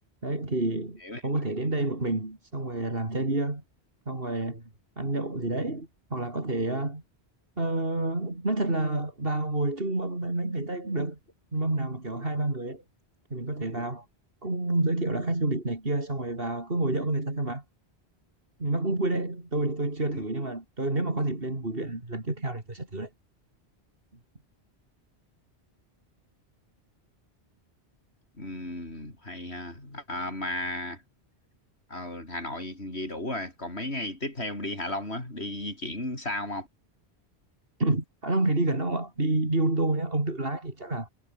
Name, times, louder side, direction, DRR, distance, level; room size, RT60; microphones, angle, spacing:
voice 1, 0.2-3.6 4.1-4.6 5.0-7.0 7.6-11.2 11.5-12.8 13.3-14.1 14.4-17.6 18.6-23.1 37.8-41.1, right 2 dB, 60° right, 4.5 m, -29 dB
voice 2, 28.4-31.0 31.9-36.7, left 1 dB, 80° left, 6.9 m, -34 dB
omnidirectional pair, 1.1 m